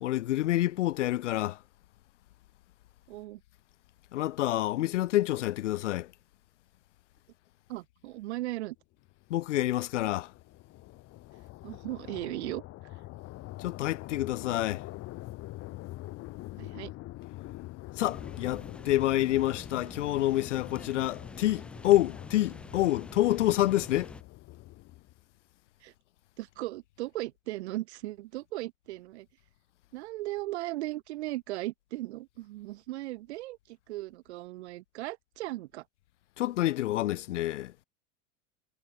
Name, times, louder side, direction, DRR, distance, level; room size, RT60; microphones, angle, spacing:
voice 1, 0.0-1.6 4.1-6.1 9.3-10.3 13.6-14.8 18.0-24.1 36.4-37.7, left 15 dB, 65° left, 0.6 m, -28 dB
voice 2, 3.1-3.4 7.7-8.8 11.6-12.6 16.6-16.9 25.8-25.9 26.4-29.3 29.9-35.8, right 17 dB, 55° right, 1.1 m, -37 dB
sound 1, 9.1-25.3, left 18 dB, 35° left, 1.9 m, -45 dB
sound 2, 18.0-24.2, left 3 dB, 5° left, 0.3 m, -46 dB
figure-of-eight pair, 90°, 39 cm